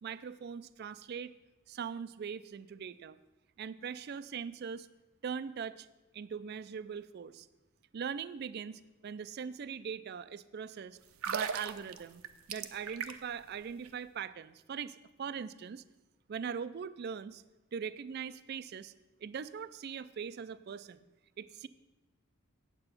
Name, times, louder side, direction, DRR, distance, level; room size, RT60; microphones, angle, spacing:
voice 1, 0.0-1.3 1.7-3.2 3.6-4.9 5.2-5.9 6.1-7.5 7.9-11.0 11.3-12.2 12.5-15.8 16.3-17.4 17.7-18.9 19.2-21.0 21.4-21.7, right 7 dB, 50° right, 15 dB, 0.3 m, -41 dB
sound 1, 11.1-13.4 13.7-13.9, right 6 dB, 85° right, 0.6 m, -38 dB
8.9 x 7.6 x 5.8 m, 1.1 s
head